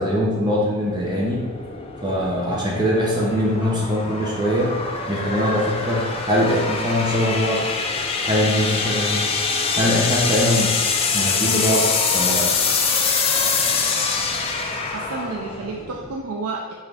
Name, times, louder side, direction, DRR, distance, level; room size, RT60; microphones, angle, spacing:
voice 1, 0.0-1.4 2.0-4.7 5.1-7.6 8.2-9.2 9.8-10.7 11.1-12.5, equal, 20° right, -3 dB, 0.6 m, -22 dB
sound 1, 0.8-16.2, left 5 dB, 25° left, 0.3 m, -24 dB
voice 2, 14.9-16.7, right 3 dB, 90° right, -1 dB, 0.4 m, -30 dB
6.0 x 2.6 x 3.3 m, 1.4 s
head